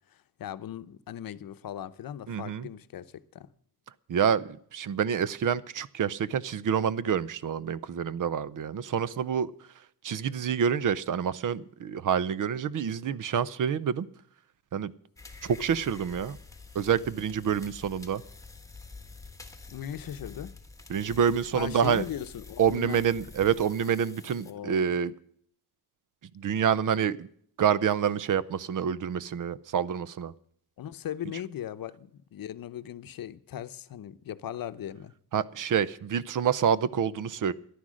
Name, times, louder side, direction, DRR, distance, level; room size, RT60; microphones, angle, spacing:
voice 1, 0.1-3.5 19.7-20.5 21.5-23.1 24.4-24.9 30.8-35.1, left 10 dB, 65° left, 0.8 m, -38 dB
voice 2, 2.3-2.7 4.1-9.5 10.0-14.1 14.7-14.9 15.4-16.4 16.7-18.2 20.9-22.0 22.6-25.1 26.3-27.3 27.6-30.3 35.3-37.5, right 8 dB, 55° right, 0.7 m, -27 dB
sound 1, 15.2-24.5, left 3 dB, 10° left, 1.4 m, -48 dB
14.0 x 11.0 x 6.3 m
wide cardioid pair, 165°, 38 cm